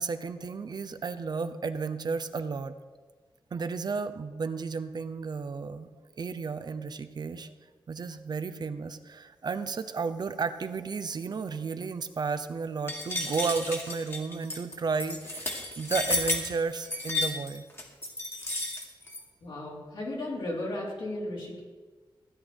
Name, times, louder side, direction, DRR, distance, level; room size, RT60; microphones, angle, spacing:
voice 1, 0.0-2.7 3.5-5.9 6.2-7.5 7.9-17.6, right 5 dB, 55° right, 10 dB, 0.7 m, -33 dB
sound 1, 12.9-19.2, left 2 dB, 30° left, 1.9 m, -32 dB
voice 2, 19.4-21.6, left 1 dB, 70° left, -4 dB, 4.3 m, -35 dB
15.5 x 10.5 x 4.5 m, 1.4 s
wide cardioid pair, 160°, 9 cm